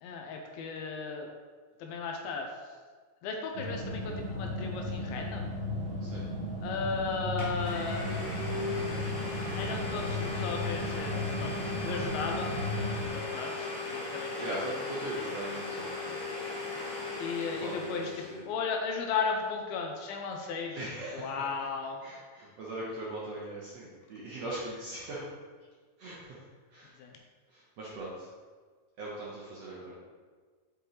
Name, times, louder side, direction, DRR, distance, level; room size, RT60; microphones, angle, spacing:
voice 1, 0.0-1.3 1.8-2.5 3.2-5.5 6.6-8.1 9.6-12.6 13.1-14.8 17.2-22.0 27.0-27.2, left 4 dB, 80° left, 2 dB, 2.4 m, -35 dB
sound 1, 3.6-13.1, left 1 dB, 55° right, 2.3 m, -35 dB
Domestic sounds home sounds, 6.9-7.0 7.4-18.4, left 3 dB, 55° left, 2.7 m, -37 dB
voice 2, 14.4-16.2 17.6-18.4 20.8-21.3 22.0-25.2 26.0-26.4 26.7-26.9 27.5-28.3 29.0-30.0, right 2 dB, 80° right, -6 dB, 1.4 m, -40 dB
8.2 x 5.0 x 3.1 m, 1.5 s
omnidirectional pair, 4.4 m